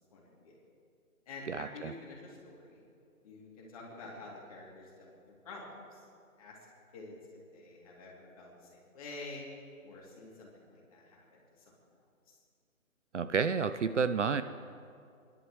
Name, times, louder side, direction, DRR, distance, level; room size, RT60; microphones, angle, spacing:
voice 1, 0.1-0.5 1.3-2.8 3.2-5.6 5.9-6.0 6.4-6.6 6.9-9.4 9.8-11.7 12.3-12.4, left 3 dB, 25° left, -4 dB, 2.9 m, -49 dB
voice 2, 1.5-1.9 13.1-14.4, right 5 dB, 60° right, 11 dB, 0.6 m, -30 dB
29.0 x 11.5 x 3.2 m, 2.3 s
figure-of-eight pair, 155°, 42 cm